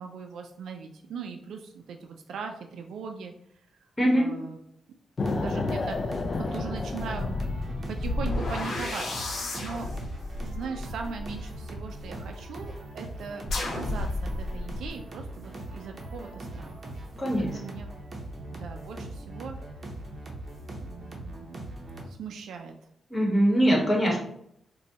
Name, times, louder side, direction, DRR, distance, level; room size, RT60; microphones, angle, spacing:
voice 1, 0.0-3.3 3.7-3.9 4.1-4.6 5.3-7.4 7.9-9.9 10.3-17.0 17.4-17.9 18.5-19.8 20.7-21.7 22.1-22.7, right 5 dB, 80° right, 4 dB, 0.3 m, -40 dB
voice 2, 4.0-4.3 17.2-17.6 23.1-24.2, equal, 20° left, -2 dB, 1.3 m, -22 dB
sound 1, 5.2-8.9, left 3 dB, 45° left, 0.4 m, -31 dB
sound 2, 5.2-22.1, right 1 dB, 40° right, 0.8 m, -41 dB
sound 3, 6.3-6.4 7.9-12.0 13.4-14.9, left 2 dB, 60° left, 0.9 m, -32 dB
4.0 x 2.2 x 2.8 m, 0.71 s
cardioid pair, 90°, 0 cm